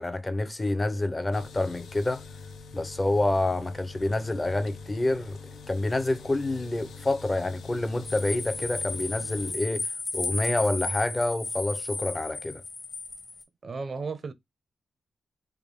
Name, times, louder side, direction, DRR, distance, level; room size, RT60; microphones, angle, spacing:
voice 1, 0.0-2.2 2.7-5.4 5.7-12.6, left 2 dB, 20° left, 0.6 m, -28 dB
sound 1, 1.3-9.5, left 4 dB, 80° left, 0.5 m, -44 dB
sound 2, 8.0-13.4, left 3 dB, 40° left, 0.9 m, -34 dB
voice 2, 13.6-14.3, right 4 dB, 45° right, 0.6 m, -34 dB
3.5 x 2.2 x 3.5 m
cardioid pair, 90°, 0 cm